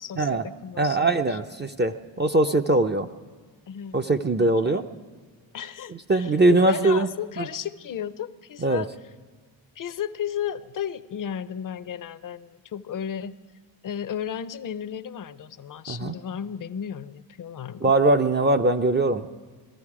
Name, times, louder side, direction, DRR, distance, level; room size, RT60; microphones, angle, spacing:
voice 1, 0.0-1.4 3.7-4.1 4.4-4.8 5.5-8.9 9.8-13.3 13.8-17.9, left 9 dB, 45° left, 14 dB, 0.6 m, -34 dB
voice 2, 0.8-3.1 3.9-4.9 5.9-7.1 7.4-7.5 8.6-8.8 15.9-16.1 17.8-19.3, right 2 dB, 25° right, 6 dB, 0.4 m, -21 dB
18.5 x 13.5 x 4.8 m, 1.5 s
cardioid pair, 85°, 46 cm